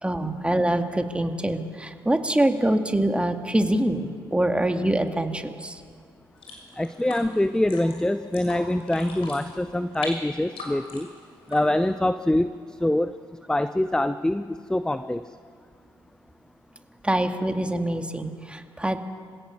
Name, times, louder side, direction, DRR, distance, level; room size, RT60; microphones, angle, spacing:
voice 1, 0.0-5.8 17.0-19.0, right 1 dB, 10° right, 6 dB, 2.1 m, -24 dB
sound 1, 6.3-11.9, left 3 dB, 60° left, 6.5 m, -41 dB
voice 2, 6.8-11.1 11.5-13.1 13.5-15.2, left 1 dB, 5° left, 13 dB, 0.7 m, -24 dB
26.5 x 16.5 x 7.1 m, 2.1 s
hypercardioid pair, 50°, 11 cm